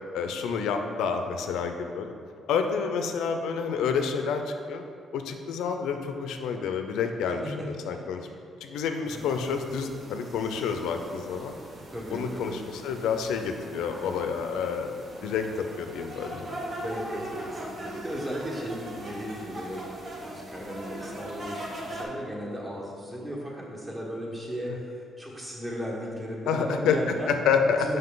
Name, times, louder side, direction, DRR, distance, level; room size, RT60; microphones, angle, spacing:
voice 1, 0.1-2.1 2.5-4.8 5.1-8.2 8.6-11.5 12.1-14.9 15.2-16.6 26.5-27.0 27.3-28.0, left 6 dB, 85° left, 6 dB, 0.5 m, -29 dB
voice 2, 7.4-8.4 9.0-9.2 11.9-12.6 16.7-19.8 20.2-27.3 27.8-28.0, equal, 20° right, -4 dB, 1.6 m, -36 dB
sound 1, 9.1-22.0, right 1 dB, 45° right, 1.2 m, -41 dB
5.6 x 5.3 x 3.9 m, 2.4 s
cardioid pair, 90°, 0 cm